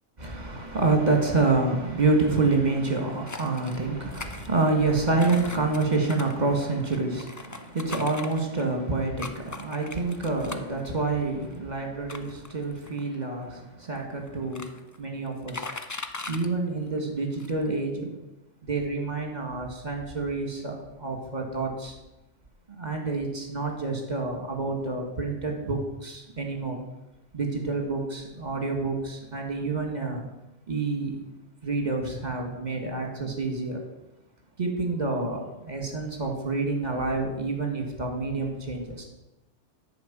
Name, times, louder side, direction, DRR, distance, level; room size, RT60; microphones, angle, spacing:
voice 1, 0.2-15.7 16.3-18.1 18.6-22.0 22.8-26.8 27.3-30.3 30.7-31.2 31.6-33.8 34.6-39.0, right 3 dB, 35° right, 3 dB, 1.9 m, -28 dB
sound 1, 3.3-3.8 4.1-4.9 5.2-8.7 9.2-10.8 11.4-11.5 12.1-13.2 14.0-14.1 14.3-15.0 15.3-16.5 17.0-17.1 17.3-17.6, left 3 dB, 25° left, 0.4 m, -39 dB
10.5 x 4.9 x 7.5 m, 0.93 s
omnidirectional pair, 1.2 m